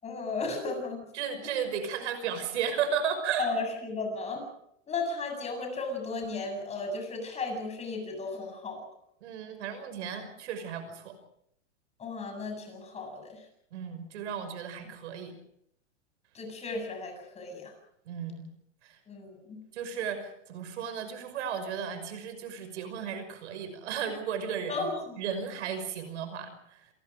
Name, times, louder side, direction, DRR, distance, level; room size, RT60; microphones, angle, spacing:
voice 1, 0.0-1.0 1.4-1.5 3.4-4.5 4.9-8.8 12.0-13.4 16.3-17.7 19.1-19.6 24.7-25.2, left 3 dB, 15° left, 4 dB, 7.7 m, -35 dB
voice 2, 1.1-3.5 9.2-11.1 13.7-15.4 18.1-18.4 18.8-19.0 19.7-24.9 25.2-26.8, right 7 dB, 70° right, 9 dB, 5.9 m, -34 dB
28.5 x 22.5 x 5.1 m, 0.73 s
supercardioid pair, 145°, 37 cm